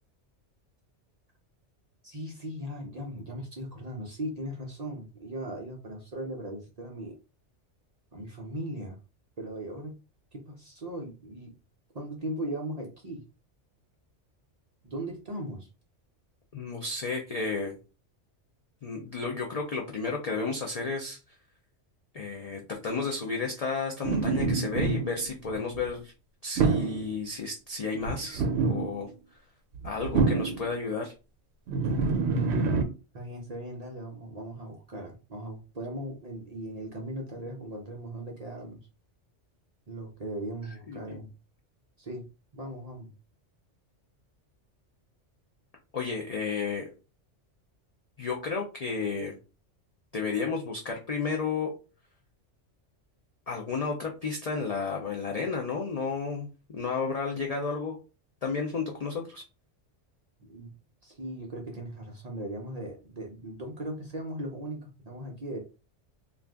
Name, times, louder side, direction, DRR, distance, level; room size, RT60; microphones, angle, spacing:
voice 1, 2.0-7.2 8.1-9.0 9.4-10.0 10.3-11.5 11.9-13.2 14.8-15.7 33.1-38.8 39.9-41.3 42.0-42.3 42.5-43.1 60.4-60.7 61.0-65.6, right 1 dB, 45° right, 1 dB, 0.5 m, -38 dB
voice 2, 16.5-17.7 18.8-21.2 22.1-26.1 26.4-29.1 29.8-31.1 40.9-41.2 45.9-46.9 48.2-49.3 50.1-51.7 53.5-58.0 58.4-59.4, left 4 dB, 60° left, 1 dB, 0.4 m, -32 dB
sound 1, 24.0-25.9 26.6-27.1 28.0-29.1 29.7-30.7 31.7-32.8, right 4 dB, 70° right, 0.8 m, -26 dB
2.5 x 2.3 x 3.4 m, 0.32 s
omnidirectional pair, 1.2 m